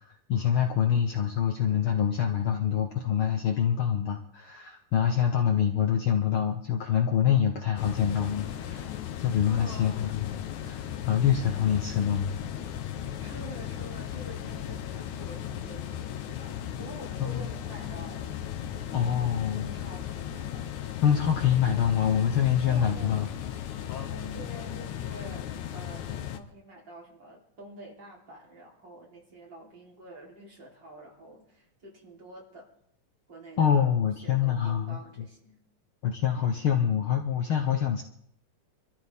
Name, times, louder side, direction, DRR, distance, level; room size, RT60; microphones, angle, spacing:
voice 1, 0.0-8.9 9.2-12.3 17.2-17.4 18.9-19.7 21.0-23.3 23.9-24.1 33.6-35.0 36.0-38.0, left 8 dB, 85° left, 3 dB, 1.1 m, -26 dB
sound 1, 7.8-26.4, left 10 dB, 70° left, 2.2 m, -36 dB
voice 2, 9.5-10.2 13.2-18.4 19.5-20.7 22.6-23.3 24.1-32.7 33.3-33.9 34.2-35.6, right 1 dB, 35° right, -2 dB, 4.0 m, -47 dB
26.5 x 14.0 x 3.6 m, 0.72 s
omnidirectional pair, 3.8 m